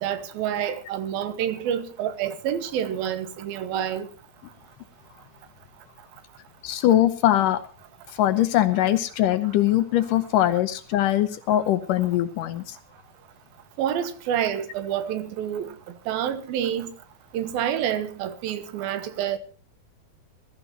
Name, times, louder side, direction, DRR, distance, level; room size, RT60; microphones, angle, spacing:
voice 1, 0.0-4.1 13.8-15.7 16.1-16.9 17.3-19.4, right 9 dB, 80° right, 2.9 m, -28 dB
voice 2, 6.6-7.6 8.1-12.8, left 13 dB, 75° left, 2.2 m, -22 dB
21.0 x 13.0 x 2.9 m
omnidirectional pair, 4.2 m